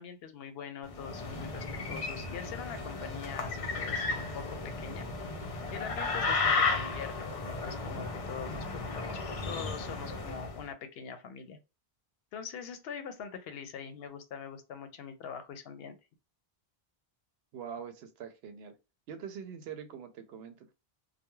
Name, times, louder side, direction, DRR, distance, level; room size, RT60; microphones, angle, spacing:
voice 1, 0.0-5.1 5.3-11.6 12.3-16.0, left 6 dB, 75° left, 0.8 m, -43 dB
sound 1, 0.9-10.6, left 3 dB, 45° left, 0.5 m, -34 dB
voice 2, 17.5-18.8 19.1-20.7, right 7 dB, 80° right, 0.8 m, -43 dB
2.2 x 2.2 x 3.0 m
omnidirectional pair, 1.0 m